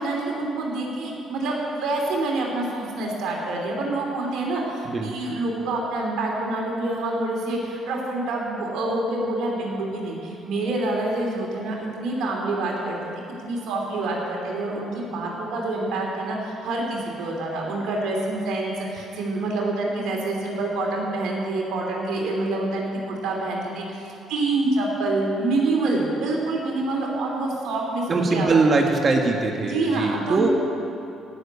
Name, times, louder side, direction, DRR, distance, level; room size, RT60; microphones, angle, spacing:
voice 1, 0.0-13.0 13.4-28.7 29.6-30.5, right 2 dB, 75° right, -1 dB, 2.9 m, -27 dB
voice 2, 28.1-30.5, right 3 dB, 40° right, 2 dB, 1.5 m, -21 dB
15.5 x 6.8 x 9.7 m, 2.7 s
cardioid pair, 85°, 0 cm